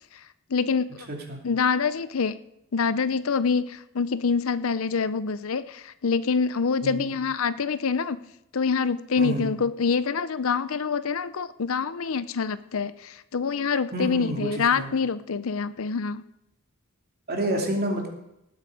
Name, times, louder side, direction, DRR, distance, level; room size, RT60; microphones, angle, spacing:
voice 1, 0.5-0.9 1.4-2.4 2.7-8.2 8.5-16.2, left 5 dB, 70° left, 15 dB, 0.6 m, -26 dB
voice 2, 6.8-7.1 9.2-9.5 13.9-14.9 17.3-18.1, right 1 dB, 45° right, 1 dB, 2.8 m, -29 dB
18.5 x 8.2 x 4.9 m, 0.85 s
head